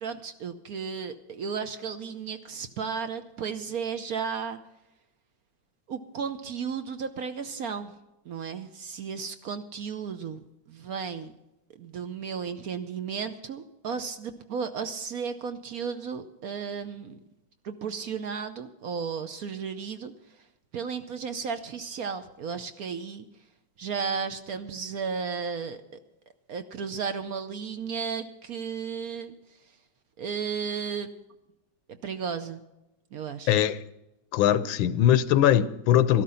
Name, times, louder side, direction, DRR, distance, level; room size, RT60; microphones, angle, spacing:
voice 1, 0.0-4.6 5.9-7.9 8.2-11.3 11.8-17.2 17.6-20.1 20.7-23.3 23.8-25.8 26.5-29.3 30.2-31.1 31.9-32.6 33.1-33.6, right 6 dB, 60° right, 1.0 m, -34 dB
voice 2, 33.5-33.8 34.3-36.2, left 11 dB, 90° left, 1.5 m, -21 dB
13.0 x 12.5 x 5.6 m
omnidirectional pair, 2.1 m